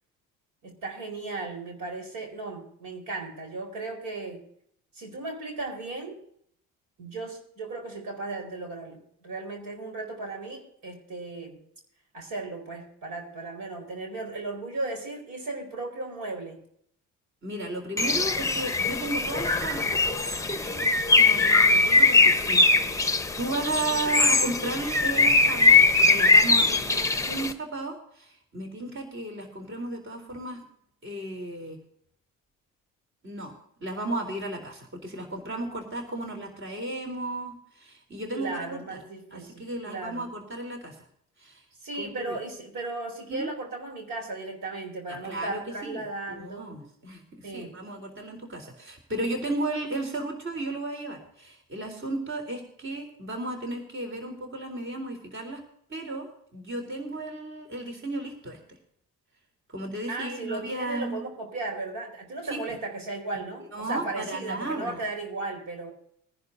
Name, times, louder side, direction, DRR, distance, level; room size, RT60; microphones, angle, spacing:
voice 1, 0.6-4.4 4.9-6.2 7.0-11.6 12.1-16.6 38.3-40.2 41.8-46.7 47.4-47.7 60.1-65.9, right 3 dB, 60° right, 3 dB, 4.7 m, -36 dB
voice 2, 17.4-20.1 20.5-22.6 23.4-30.6 31.0-31.8 33.2-33.5 33.8-39.0 39.3-41.0 41.4-41.6 42.0-42.4 43.3-43.5 45.1-55.6 55.9-58.6 59.7-61.2 62.5-62.6 63.7-65.0, right 2 dB, 30° right, 3 dB, 3.7 m, -34 dB
Bird, 18.0-27.5, left 3 dB, 10° left, 1.1 m, -21 dB
22.5 x 11.0 x 2.7 m, 0.67 s
hypercardioid pair, 65°, 38 cm